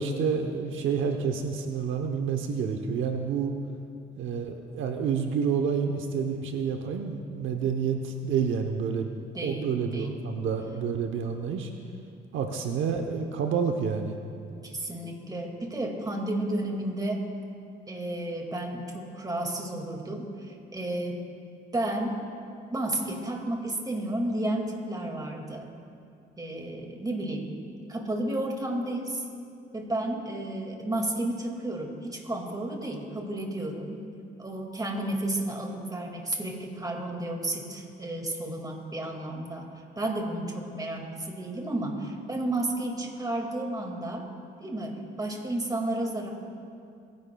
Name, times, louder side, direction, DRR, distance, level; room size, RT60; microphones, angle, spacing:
voice 1, 0.0-3.5 4.2-11.7 12.3-14.2, right 6 dB, 80° right, 4 dB, 0.9 m, -29 dB
voice 2, 9.3-10.2 14.6-17.2 17.9-21.2 21.7-22.2 22.7-25.7 26.4-27.5 27.9-29.2 29.7-34.0 34.4-39.7 40.0-44.2 44.6-46.3, right 1 dB, 20° right, 1 dB, 2.1 m, -32 dB
26.5 x 10.5 x 2.3 m, 2.5 s
cardioid pair, 90°, 20 cm